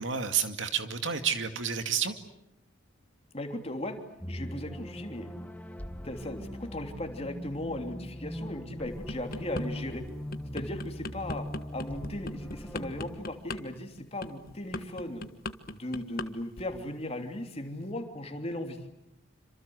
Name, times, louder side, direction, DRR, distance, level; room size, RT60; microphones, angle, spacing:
voice 1, 0.0-2.1, right 7 dB, 70° right, 8 dB, 2.3 m, -30 dB
voice 2, 3.3-4.0 4.3-5.3 6.0-10.0 10.5-11.5 11.7-15.2 15.7-18.8, left 1 dB, 30° left, 5 dB, 3.2 m, -37 dB
sound 1, 4.2-13.2, equal, 10° left, 1.4 m, -40 dB
sound 2, 8.9-9.7 10.1-16.3 16.5-16.8, left 2 dB, 50° left, 1.5 m, -38 dB
27.5 x 26.5 x 8.1 m, 0.83 s
head